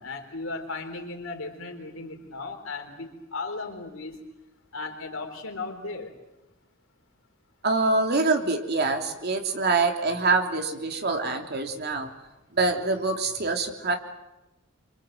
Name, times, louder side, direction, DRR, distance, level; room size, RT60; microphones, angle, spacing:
voice 1, 0.0-4.2 4.7-6.1, left 3 dB, 85° left, 4 dB, 4.2 m, -36 dB
voice 2, 7.6-12.1 12.5-14.0, right 3 dB, 50° right, 4 dB, 3.0 m, -25 dB
26.5 x 25.5 x 7.9 m, 0.97 s
head